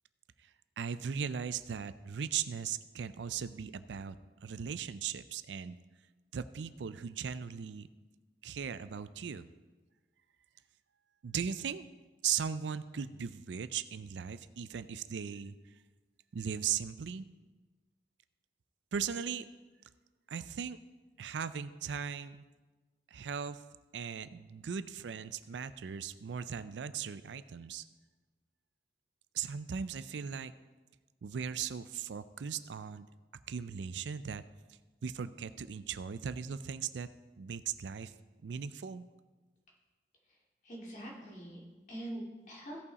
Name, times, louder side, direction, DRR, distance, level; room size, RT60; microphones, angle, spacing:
voice 1, 0.8-5.8 6.3-7.9 8.4-9.5 11.2-11.8 12.2-15.5 16.3-17.2 18.9-19.5 20.3-20.8 21.2-22.4 23.1-23.6 23.9-27.8 29.3-30.5 31.2-33.1 33.5-34.4 35.0-37.1 37.4-38.1 38.4-39.0, right 7 dB, 85° right, 13 dB, 0.4 m, -38 dB
voice 2, 40.6-42.8, right 1 dB, 45° left, -4 dB, 2.5 m, -44 dB
16.0 x 5.6 x 4.1 m, 1.3 s
head